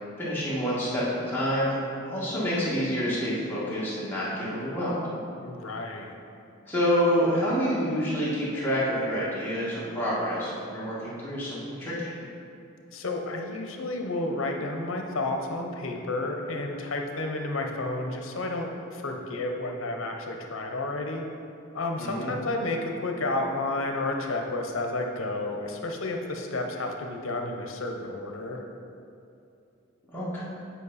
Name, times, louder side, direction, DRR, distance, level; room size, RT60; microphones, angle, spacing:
voice 1, 0.2-5.0 6.7-12.1 22.0-22.3 30.1-30.4, equal, 10° left, -9 dB, 1.8 m, -28 dB
voice 2, 5.4-6.1 12.9-21.3 21.7-28.6, left 2 dB, 70° left, 2 dB, 0.8 m, -31 dB
8.3 x 5.0 x 4.1 m, 2.6 s
head